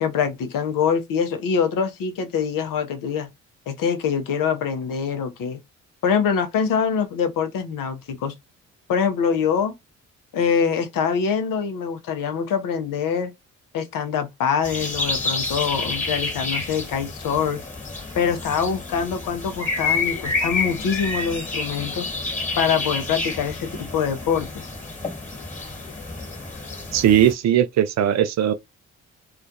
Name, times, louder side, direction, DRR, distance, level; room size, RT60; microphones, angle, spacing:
voice 1, 0.0-3.3 3.7-5.6 6.0-8.4 8.9-9.7 10.3-13.3 13.7-17.6 18.1-22.1 22.6-24.7, left 7 dB, 60° left, 0.7 m, -24 dB
sound 1, 14.6-27.3, left 3 dB, 20° left, 1.4 m, -29 dB
voice 2, 26.9-28.5, right 10 dB, 50° right, 0.4 m, -18 dB
2.4 x 2.2 x 2.6 m
hypercardioid pair, 45°, 37 cm